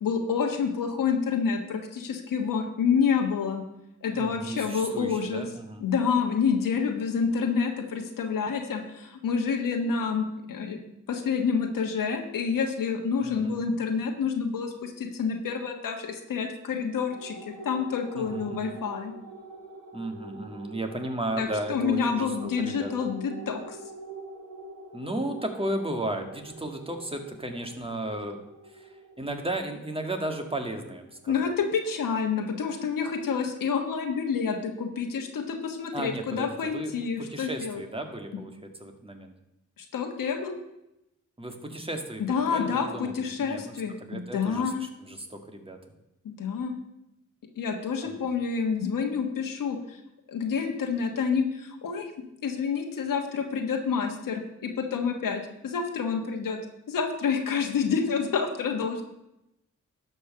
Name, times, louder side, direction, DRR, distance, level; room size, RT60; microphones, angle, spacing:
voice 1, 0.0-3.6 4.0-5.4 5.8-10.8 11.1-19.1 21.4-23.8 31.3-37.8 39.8-40.6 42.3-44.8 46.2-46.7 47.6-50.0 50.3-52.1 52.4-56.6 56.9-59.0, left 6 dB, 85° left, 3 dB, 1.4 m, -28 dB
voice 2, 4.1-5.8 13.2-13.7 18.1-18.8 19.9-22.9 24.9-28.4 28.6-31.5 35.9-39.3 41.4-43.7 44.0-45.8 48.0-48.3, right 1 dB, 15° right, 4 dB, 2.1 m, -35 dB
sound 1, 17.1-31.9, right 2 dB, 85° right, 1.8 m, -45 dB
12.0 x 5.5 x 6.9 m, 0.88 s
cardioid pair, 55°, 32 cm